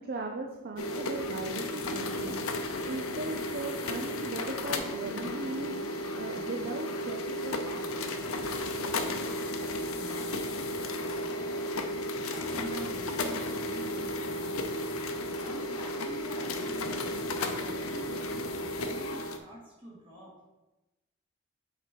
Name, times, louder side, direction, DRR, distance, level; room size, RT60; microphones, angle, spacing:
voice 1, 0.0-7.9, right 3 dB, 45° right, 3 dB, 0.5 m, -38 dB
sound 1, 0.8-19.4, left 1 dB, 85° left, 0.7 m, -34 dB
voice 2, 9.9-10.5 10.9-11.7 12.3-14.7 15.2-20.3, equal, 25° right, -5 dB, 2.2 m, -47 dB
7.8 x 3.8 x 4.5 m, 1.1 s
head